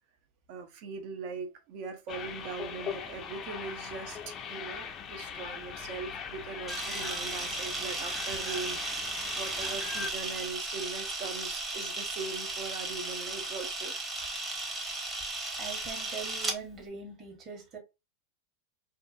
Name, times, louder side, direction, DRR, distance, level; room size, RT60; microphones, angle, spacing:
voice 1, 0.5-8.8 9.3-13.9, right 4 dB, 55° right, 0.7 m, -40 dB
sound 1, 2.1-10.1, left 7 dB, 35° left, 0.5 m, -40 dB
Camera, 6.7-16.6, right 2 dB, 20° right, 0.9 m, -35 dB
voice 2, 15.6-17.8, right 5 dB, 40° right, 1.3 m, -42 dB
2.7 x 2.3 x 2.5 m
hypercardioid pair, 105°, 0 cm